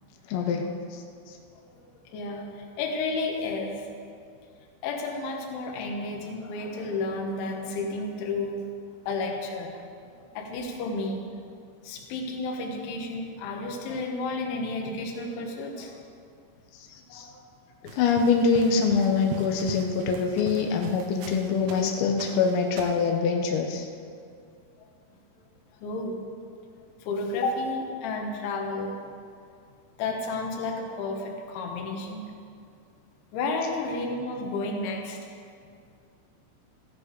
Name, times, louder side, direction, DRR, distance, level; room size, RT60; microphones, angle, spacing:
voice 1, 0.3-0.6 0.9-1.0 17.1-17.3 17.9-23.9, left 5 dB, 90° left, 2 dB, 3.7 m, -24 dB
voice 2, 2.1-3.8 4.8-8.6 9.1-9.8 10.4-11.2 11.8-16.0 17.1-17.4 25.8-26.2 27.0-28.9 30.0-32.3 33.3-35.2, left 3 dB, 70° left, 2 dB, 3.7 m, -31 dB
sound 1, 17.9-21.9 22.2-23.1, right 5 dB, 85° right, 3.8 m, -41 dB
14.5 x 13.5 x 5.2 m, 2.3 s
omnidirectional pair, 5.8 m